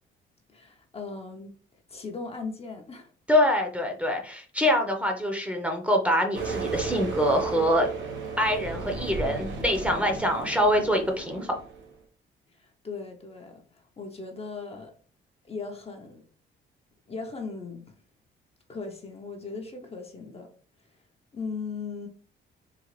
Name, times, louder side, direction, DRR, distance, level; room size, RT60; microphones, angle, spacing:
voice 1, 0.5-1.5 1.9-3.1 12.5-14.9 15.4-16.2 17.1-17.9 18.7-20.5 21.3-22.1, left 4 dB, 30° left, 2 dB, 0.7 m, -38 dB
voice 2, 3.3-7.9 8.4-11.5, equal, 5° right, 3 dB, 0.7 m, -25 dB
sound 1, 6.3-11.9, right 4 dB, 75° right, 0.9 m, -34 dB
3.8 x 2.4 x 3.1 m, 0.41 s
cardioid pair, 90°, 20 cm